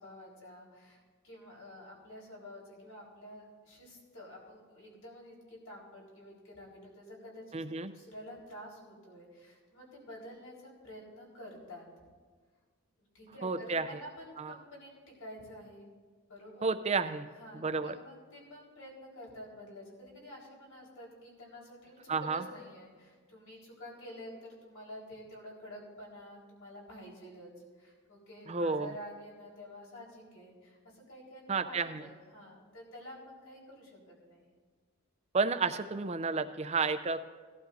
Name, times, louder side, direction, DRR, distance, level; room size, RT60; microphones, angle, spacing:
voice 1, 0.0-7.6 7.9-11.8 13.1-14.9 15.2-15.9 16.3-16.7 17.4-27.5 27.8-34.0 34.3-34.5, equal, 75° left, -3 dB, 4.2 m, -49 dB
voice 2, 7.5-7.9 13.4-13.9 14.4-14.5 16.6-17.3 17.5-17.9 22.1-22.4 28.5-28.9 31.5-32.1 35.3-37.4, right 4 dB, 30° right, 10 dB, 0.5 m, -31 dB
18.5 x 12.0 x 2.6 m, 1.5 s
head